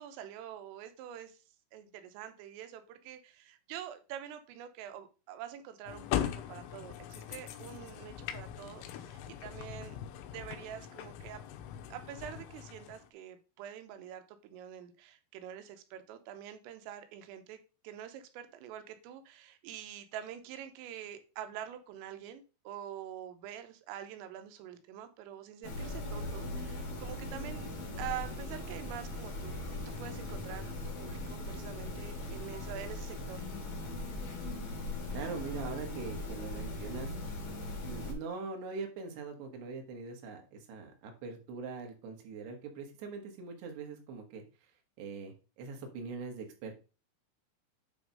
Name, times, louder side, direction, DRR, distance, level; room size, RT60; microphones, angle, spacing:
voice 1, 0.0-1.4 1.7-10.0 10.3-11.4 11.9-17.6 17.8-27.7 28.0-33.4, right 10 dB, 85° right, 8 dB, 3.5 m, -46 dB
sound 1, 5.9-13.1, left 10 dB, 85° left, 3.2 m, -40 dB
sound 2, 25.6-38.1, left 2 dB, 70° left, 1.6 m, -39 dB
voice 2, 35.1-37.1 37.8-44.4 45.0-46.7, right 4 dB, 65° right, 3 dB, 3.3 m, -42 dB
9.2 x 3.4 x 5.3 m, 0.33 s
omnidirectional pair, 5.8 m